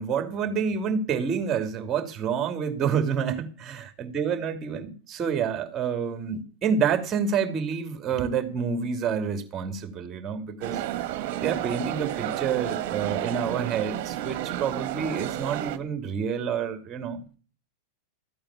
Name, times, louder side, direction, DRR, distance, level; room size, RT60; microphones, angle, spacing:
voice 1, 0.0-10.8 11.4-17.2, right 6 dB, 30° right, 2.8 m, -28 dB
sound 1, 10.6-15.8, right 13 dB, 55° right, 1.7 m, -31 dB
14.0 x 8.8 x 7.0 m
figure-of-eight pair, 90°, 0 cm